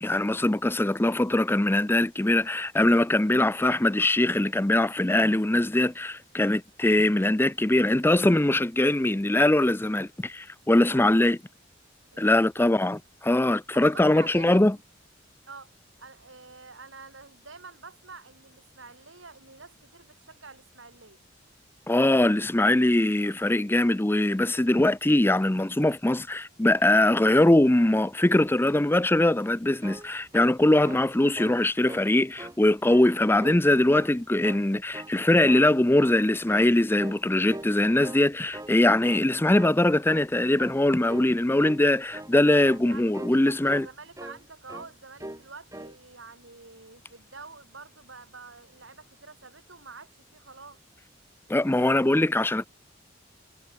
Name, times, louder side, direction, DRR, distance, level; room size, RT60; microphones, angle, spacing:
voice 1, 0.0-11.4 12.2-14.8 21.9-43.9 51.5-52.7, left 1 dB, 10° left, 0.6 m, -22 dB
voice 2, 10.7-11.3 12.1-12.7 13.7-14.7 15.5-15.7 16.0-21.2 42.8-50.8, right 4 dB, 80° right, 6.0 m, -47 dB
sound 1, 29.6-31.1 31.4-31.6 31.9-32.6 32.9-33.6 33.9-34.7 34.9-35.2 35.4-36.2 36.5-36.7 37.0-37.2 37.5-38.2 38.5-38.8 39.0-39.3 39.5-39.8 40.1-40.3 40.6-40.8 41.1-41.3 41.6-41.8 42.1-42.3 42.6-42.9 43.1-43.4 43.7-44.4 44.7-44.9 45.2-45.4 45.7-46.0, right 1 dB, 15° right, 2.6 m, -40 dB
head